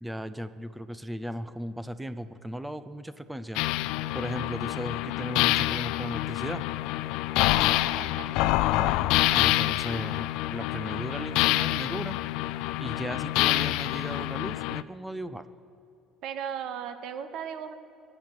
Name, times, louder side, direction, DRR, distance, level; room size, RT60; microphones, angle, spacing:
voice 1, 0.0-3.6 4.1-6.6 8.7-12.2 12.8-15.5, equal, 5° right, 12 dB, 0.5 m, -36 dB
sound 1, 3.6-14.8, left 16 dB, 75° left, 0.3 m, -27 dB
voice 2, 7.5-8.6 16.2-17.8, right 8 dB, 55° right, 10 dB, 1.1 m, -37 dB
23.5 x 8.8 x 6.1 m, 2.7 s
cardioid pair, 160°, 0 cm